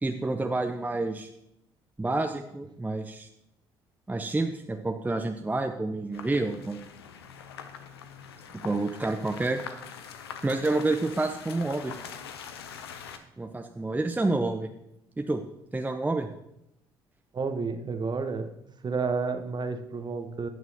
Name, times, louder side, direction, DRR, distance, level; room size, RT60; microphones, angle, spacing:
voice 1, 0.0-1.3 2.0-3.3 4.1-6.8 8.6-9.8 10.4-11.9 13.4-14.7 15.2-15.4 15.7-16.3, right 2 dB, 15° right, 5 dB, 0.7 m, -29 dB
sound 1, 6.1-13.2, left 7 dB, 85° left, 0.5 m, -43 dB
voice 2, 17.3-18.5 18.8-20.5, right 4 dB, 35° right, 8 dB, 1.0 m, -30 dB
16.5 x 6.1 x 2.8 m, 0.81 s
hypercardioid pair, 50°, 13 cm